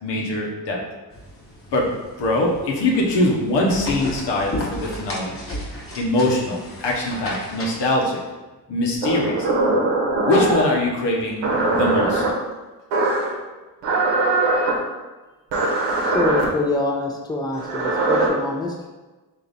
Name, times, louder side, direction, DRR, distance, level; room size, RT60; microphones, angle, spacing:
voice 1, 0.0-0.8 1.7-1.9 2.2-5.4 5.9-8.2 8.7-9.5 10.2-11.4 11.8-12.2, left 1 dB, 75° left, -2 dB, 1.0 m, -22 dB
sound 1, 1.1-7.8, left 1 dB, 30° left, 1.2 m, -34 dB
sound 2, 9.0-10.7 11.4-12.3 12.9-13.3 13.8-14.7 15.5-16.4 17.5-18.3, right 2 dB, 90° right, 0.9 m, -21 dB
voice 2, 16.1-18.9, left 2 dB, 10° left, 0 dB, 0.6 m, -25 dB
3.5 x 2.8 x 4.0 m, 1.2 s
cardioid pair, 65°, 43 cm